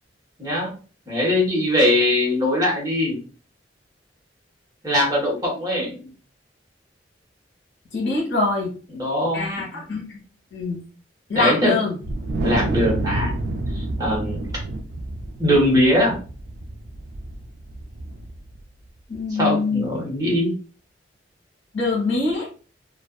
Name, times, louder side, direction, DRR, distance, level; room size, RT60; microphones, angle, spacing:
voice 1, 0.4-0.7 1.1-3.2 4.8-6.1 8.9-9.5 11.3-11.8 12.4-13.3 13.7-14.5 15.4-16.2 19.4-20.5, left 1 dB, 20° right, -4 dB, 1.1 m, -21 dB
voice 2, 7.9-8.7 9.3-10.2 10.5-10.8 11.3-12.0 19.1-19.8 21.7-22.5, left 3 dB, 80° left, -2 dB, 1.0 m, -23 dB
Wind, 12.0-18.6, right 2 dB, 60° right, 0.3 m, -28 dB
2.4 x 2.3 x 2.3 m, 0.37 s
head